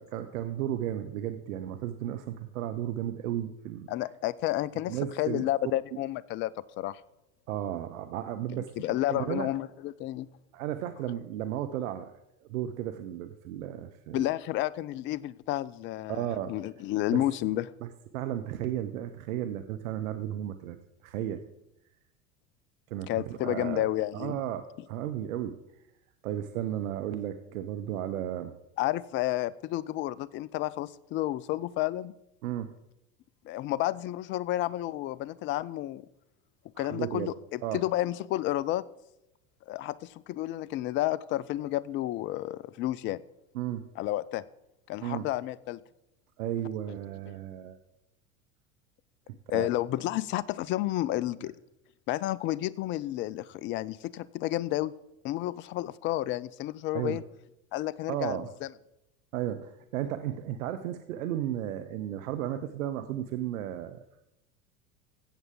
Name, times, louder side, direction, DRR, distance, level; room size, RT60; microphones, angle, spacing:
voice 1, 0.0-3.9 4.9-5.7 7.5-8.7 9.1-9.5 10.5-12.1 12.5-14.2 16.1-16.5 17.1-17.2 17.8-20.8 21.0-21.4 22.9-23.9 24.1-25.5 26.2-28.5 32.4-32.7 36.8-37.3 37.6-37.8 43.5-43.9 45.0-45.3 46.4-47.8 49.3-49.7 56.9-57.2 58.1-58.5 59.3-64.0, right 11 dB, 70° right, 9 dB, 0.9 m, -34 dB
voice 2, 3.9-6.5 6.8-7.0 8.5-10.3 14.1-17.7 23.1-24.3 28.8-32.1 33.4-36.0 36.8-38.8 39.7-43.2 44.0-44.4 44.9-45.8 47.3-47.4 49.5-51.5 52.1-54.9 55.2-57.2 57.7-58.7, left 15 dB, 30° left, 20 dB, 0.4 m, -31 dB
14.0 x 8.0 x 3.8 m, 0.87 s
hypercardioid pair, 90°, 42 cm